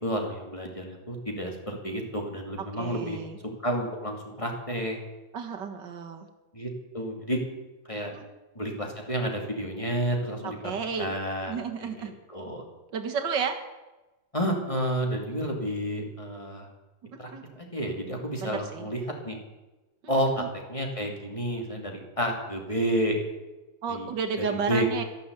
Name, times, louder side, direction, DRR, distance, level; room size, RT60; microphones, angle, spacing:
voice 1, 0.0-3.2 3.6-5.0 6.5-7.4 7.9-8.1 8.5-10.6 11.0-11.9 12.3-12.6 14.3-16.7 17.2-17.3 17.6-19.4 20.1-20.4 20.7-23.1 23.9-24.1 24.4-24.9, equal, 20° left, 1 dB, 2.5 m, -30 dB
voice 2, 2.8-3.4 5.3-6.3 8.1-8.2 10.4-11.1 11.5-12.1 12.9-13.6 17.3-17.4 18.4-18.9 20.2-20.5 23.8-25.0, right 6 dB, 90° right, 5 dB, 2.2 m, -32 dB
13.0 x 11.0 x 8.2 m, 1.1 s
omnidirectional pair, 1.9 m